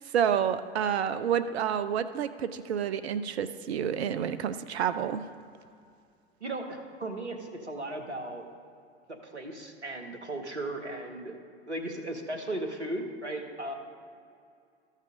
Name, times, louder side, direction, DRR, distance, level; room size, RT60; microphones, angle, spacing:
voice 1, 0.0-5.2, right 8 dB, 70° right, 11 dB, 0.6 m, -29 dB
voice 2, 6.4-8.5 9.1-11.4 11.7-13.7, right 1 dB, 85° right, 5 dB, 1.3 m, -36 dB
13.5 x 6.5 x 5.0 m, 2.3 s
figure-of-eight pair, 90°, 33 cm